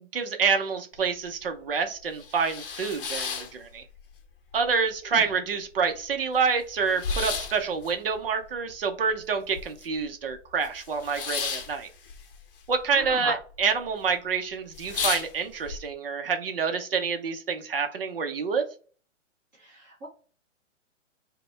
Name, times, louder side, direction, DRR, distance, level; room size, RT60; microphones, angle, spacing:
voice 1, 0.1-3.8 4.5-11.9 12.7-18.6, right 5 dB, 45° right, 5 dB, 0.7 m, -27 dB
sound 1, 1.0-1.1 1.5-1.6 2.0-4.2 4.5-5.3 5.6-5.7 5.9-10.0 10.3-13.1 13.4-13.9 14.3-14.4 14.7-15.8, left 5 dB, 45° left, 0.7 m, -34 dB
voice 2, 12.9-13.4 19.6-20.1, right 1 dB, 15° right, -5 dB, 0.8 m, -36 dB
4.9 x 2.2 x 4.4 m, 0.39 s
hypercardioid pair, 170°, 38 cm